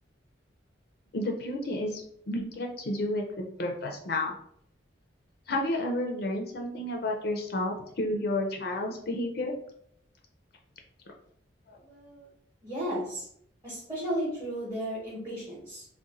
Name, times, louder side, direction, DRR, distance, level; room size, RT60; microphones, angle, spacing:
voice 1, 1.1-4.3 5.5-9.6 11.7-11.8, left 1 dB, 50° left, 2 dB, 0.4 m, -31 dB
voice 2, 11.8-12.3 12.6-13.3 13.6-15.9, equal, 20° right, -8 dB, 0.8 m, -34 dB
2.5 x 2.1 x 3.9 m, 0.69 s
head